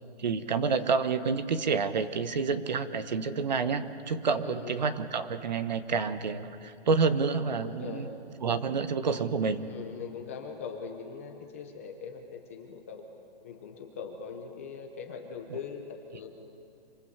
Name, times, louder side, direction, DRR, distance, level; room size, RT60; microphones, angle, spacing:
voice 1, 0.2-8.1 8.4-9.7, right 5 dB, 45° right, 11 dB, 1.2 m, -28 dB
voice 2, 4.4-4.7 7.6-8.2 9.6-13.0 13.4-16.3, left 6 dB, 15° left, 3 dB, 0.9 m, -41 dB
26.5 x 25.0 x 8.1 m, 2.7 s
hypercardioid pair, 180°, 32 cm